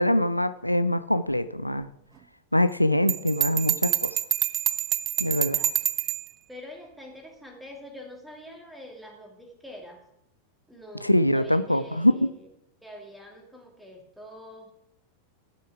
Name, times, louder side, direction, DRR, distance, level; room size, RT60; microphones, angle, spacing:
voice 1, 0.0-1.9 2.5-4.2 5.2-5.6 11.0-12.3, left 1 dB, 90° left, 13 dB, 0.3 m, -23 dB
Bell, 3.1-6.3, right 12 dB, 35° right, 0.5 m, -26 dB
voice 2, 5.2-5.7 6.5-10.0 10.7-12.5 12.8-14.7, left 1 dB, ahead, 0 dB, 2.3 m, -45 dB
12.5 x 5.6 x 4.7 m, 0.79 s
figure-of-eight pair, 90°, 0 cm